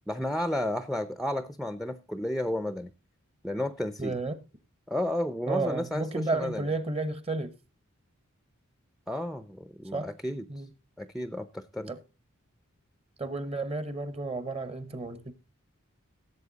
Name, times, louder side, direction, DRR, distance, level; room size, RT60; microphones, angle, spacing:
voice 1, 0.1-2.9 3.4-4.2 4.9-6.6 9.1-10.4 11.0-11.9, left 1 dB, ahead, 0.5 m, -32 dB
voice 2, 4.0-4.4 5.5-7.5 9.9-10.1 10.5-10.7 11.9-12.0 13.2-15.3, right 3 dB, 25° right, 1.0 m, -32 dB
16.0 x 8.0 x 4.0 m
head